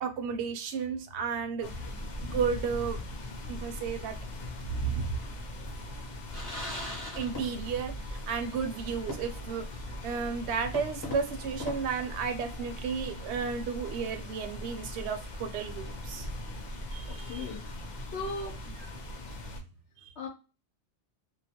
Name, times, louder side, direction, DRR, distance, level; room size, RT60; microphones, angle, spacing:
voice 1, 0.0-1.7 2.3-3.0 3.5-4.1 4.7-5.2 7.1-16.3 16.9-17.5 18.7-18.8 20.0-20.1, right 6 dB, 70° right, 6 dB, 0.8 m, -33 dB
sound 1, 1.6-19.6, left 1 dB, 55° left, 0.5 m, -40 dB
sound 2, 6.3-7.9 8.2-8.3 9.1-9.6 10.0-10.1 10.7-12.7, left 1 dB, 25° left, 0.8 m, -41 dB
voice 2, 17.1-17.6 18.1-18.6 20.2-20.3, left 3 dB, 70° left, 3 dB, 0.9 m, -37 dB
2.3 x 2.1 x 2.7 m, 0.31 s
omnidirectional pair, 1.2 m